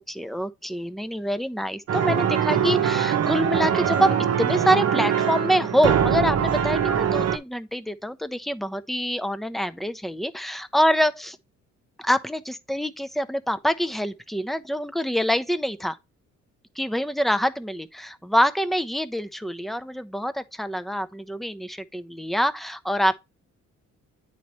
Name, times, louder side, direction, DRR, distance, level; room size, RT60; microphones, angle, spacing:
voice 1, 0.0-11.3 12.0-16.0 16.8-23.2, equal, ahead, 0.6 m, -25 dB
sound 1, 1.9-7.4, right 8 dB, 55° right, 0.9 m, -23 dB
9.2 x 4.2 x 3.1 m
cardioid pair, 90°, 30 cm